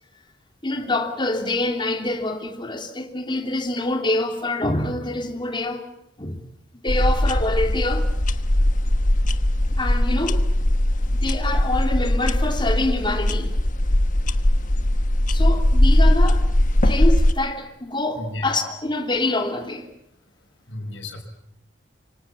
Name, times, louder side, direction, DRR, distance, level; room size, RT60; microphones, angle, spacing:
voice 1, 0.6-5.8 6.2-6.4 6.8-8.1 9.8-10.4 11.0-13.5 15.3-16.4 16.8-19.9, left 2 dB, 25° left, 3.0 m, -26 dB
sound 1, 6.9-17.3, left 1 dB, 45° left, 1.2 m, -19 dB
voice 2, 18.1-18.6 20.7-21.2, left 1 dB, 80° left, 5.8 m, -33 dB
26.0 x 24.5 x 7.3 m
head